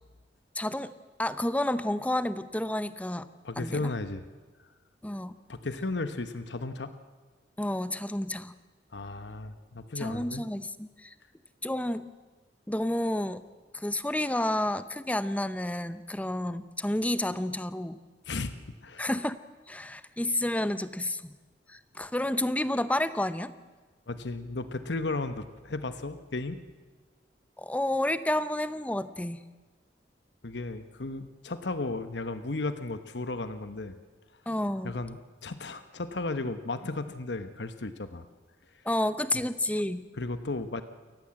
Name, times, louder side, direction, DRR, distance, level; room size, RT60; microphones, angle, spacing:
voice 1, 0.5-0.9 1.2-3.3 3.6-3.9 5.0-5.3 7.6-8.6 10.0-11.1 11.6-12.1 12.7-13.4 13.7-18.0 19.0-19.4 19.7-21.4 21.7-23.5 27.6-29.4 34.5-34.9 38.8-40.0, left 1 dB, 10° left, 13 dB, 0.7 m, -30 dB
voice 2, 3.4-4.3 5.5-6.9 8.9-10.4 18.3-18.5 18.8-19.1 24.1-26.6 30.4-33.9 34.8-38.3 40.1-40.8, left 2 dB, 70° left, 10 dB, 1.1 m, -34 dB
28.5 x 14.5 x 7.7 m, 1.3 s
head